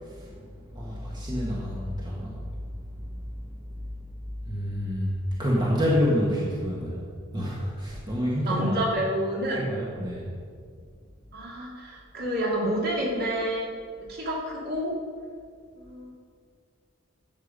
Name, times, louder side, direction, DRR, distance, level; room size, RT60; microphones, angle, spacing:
voice 1, 0.7-2.3 4.5-5.1 5.4-7.0 7.3-8.8 9.5-10.3, equal, 20° right, -5 dB, 1.6 m, -28 dB
voice 2, 8.4-9.7 11.3-13.7 14.1-14.9 15.8-16.1, right 1 dB, 45° right, -3 dB, 2.6 m, -29 dB
13.0 x 8.0 x 5.3 m, 2.1 s
head